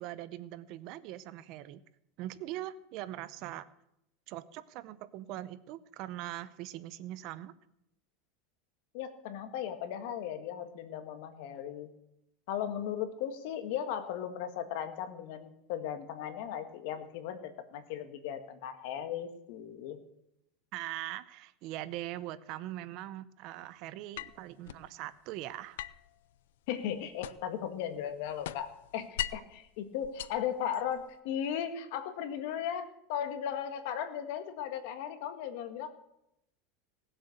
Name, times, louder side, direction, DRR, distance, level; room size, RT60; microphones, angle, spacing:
voice 1, 0.0-1.8 2.2-3.7 4.3-7.5 20.7-25.8, right 14 dB, 50° right, 15 dB, 0.7 m, -41 dB
voice 2, 8.9-11.9 12.5-20.0 26.7-35.9, left 9 dB, 65° left, 9 dB, 1.7 m, -37 dB
sound 1, 24.2-24.9 25.8-27.6 28.0-29.6 30.0-31.1, left 13 dB, 90° left, 0.5 m, -41 dB
18.5 x 7.7 x 6.5 m, 0.82 s
supercardioid pair, 150°, 0 cm